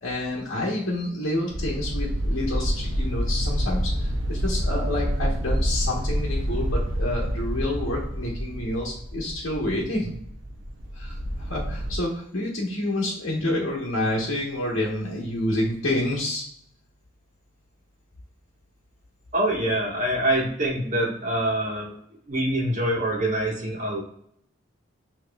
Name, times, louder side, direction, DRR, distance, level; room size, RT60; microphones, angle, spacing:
voice 1, 0.0-10.1 10.9-16.4, left 1 dB, 70° left, -3 dB, 1.0 m, -28 dB
sound 1, 1.5-12.0, equal, 70° right, 0.6 m, -28 dB
voice 2, 19.3-21.9 22.3-24.0, right 1 dB, 40° right, -4 dB, 1.4 m, -25 dB
7.1 x 3.0 x 2.2 m, 0.69 s
head